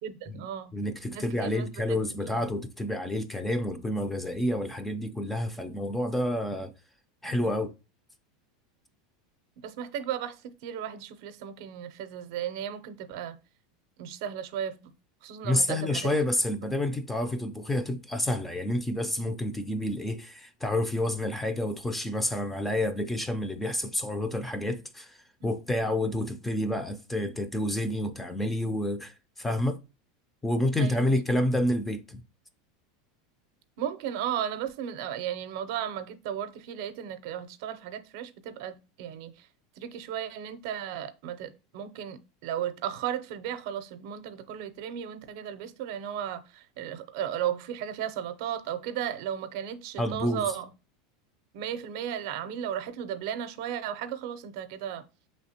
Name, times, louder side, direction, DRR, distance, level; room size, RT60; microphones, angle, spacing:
voice 1, 0.0-0.7 1.1-2.0 2.2-2.4 7.4-7.5 9.6-13.4 14.0-14.9 15.2-16.1 25.4-25.6 30.8-31.1 33.8-39.5 39.8-50.7 51.5-55.0, right 9 dB, 60° right, 0.5 m, -35 dB
voice 2, 0.7-6.7 7.2-7.7 15.4-29.8 30.4-32.2 50.0-50.5, left 1 dB, 5° left, 0.4 m, -29 dB
5.5 x 3.2 x 2.8 m
supercardioid pair, 155°, 2 cm